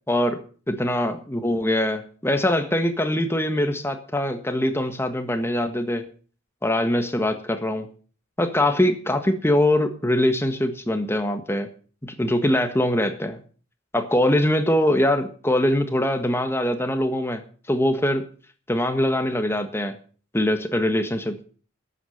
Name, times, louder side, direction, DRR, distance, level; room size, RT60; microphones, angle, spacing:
voice 1, 0.1-0.4 0.7-6.1 6.6-7.9 8.4-11.7 12.0-13.4 13.9-17.4 17.7-18.2 18.7-19.9 20.3-21.5, left 1 dB, 10° left, 8 dB, 1.5 m, -23 dB
12.5 x 8.3 x 7.8 m, 0.42 s
head